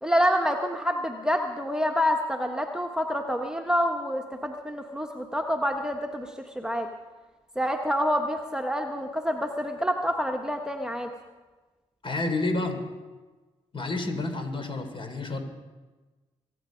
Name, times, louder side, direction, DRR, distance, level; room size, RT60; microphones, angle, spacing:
voice 1, 0.0-6.9 7.5-11.1, equal, 5° right, 3 dB, 1.4 m, -27 dB
voice 2, 12.0-12.8 13.7-15.4, left 2 dB, 40° left, 6 dB, 3.5 m, -29 dB
23.5 x 8.4 x 5.2 m, 1.3 s
hypercardioid pair, 45°, 13 cm